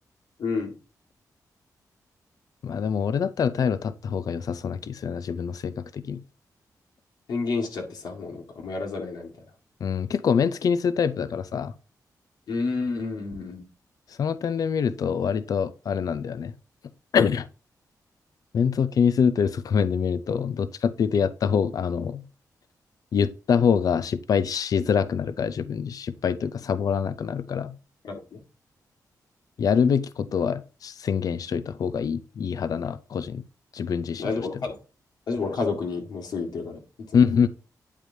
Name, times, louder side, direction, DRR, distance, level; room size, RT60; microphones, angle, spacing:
voice 1, 0.4-0.7 7.3-9.3 12.5-13.6 28.0-28.4 34.2-34.8 35.3-36.8, left 4 dB, 85° left, 1.8 m, -30 dB
voice 2, 2.6-6.2 9.8-11.7 14.2-16.5 17.1-17.5 18.5-22.2 23.1-27.7 29.6-33.4 33.7-34.5 37.1-37.5, left 7 dB, 65° left, 0.5 m, -25 dB
9.2 x 5.0 x 2.7 m
wide cardioid pair, 150°, 7 cm